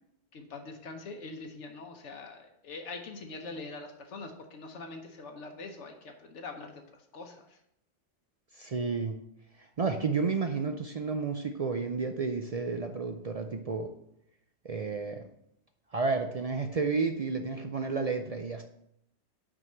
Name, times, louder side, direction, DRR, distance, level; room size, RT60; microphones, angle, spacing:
voice 1, 0.3-7.6, left 3 dB, 75° left, 3 dB, 1.2 m, -43 dB
voice 2, 8.6-9.2 9.6-13.9 14.6-15.3 15.9-18.6, right 4 dB, 55° right, 5 dB, 0.4 m, -31 dB
6.1 x 4.6 x 6.5 m, 0.77 s
omnidirectional pair, 1.2 m